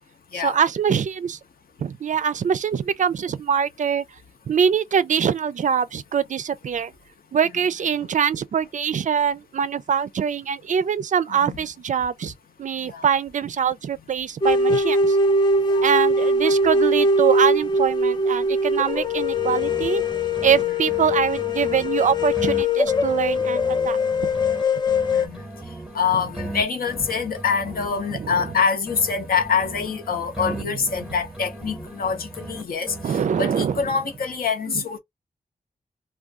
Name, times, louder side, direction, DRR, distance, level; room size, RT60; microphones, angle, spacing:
voice 1, 0.3-1.4 1.8-4.0 4.5-6.9 7.3-12.3 12.6-15.2 15.8-20.0 20.4-24.0 24.3-24.4 28.1-28.3 30.5-30.7 33.0-33.9 34.7-34.8, right 7 dB, 55° right, 0.4 m, -23 dB
sound 1, 14.4-25.3, left 1 dB, 30° left, 0.5 m, -21 dB
sound 2, 19.0-20.6 20.9-24.6 24.9-28.6 28.9-32.6 32.9-34.3, right 2 dB, 5° right, 0.8 m, -38 dB
voice 2, 25.1-25.4 25.9-35.0, left 6 dB, 75° left, 0.8 m, -25 dB
2.4 x 2.2 x 3.5 m
wide cardioid pair, 100°, 15 cm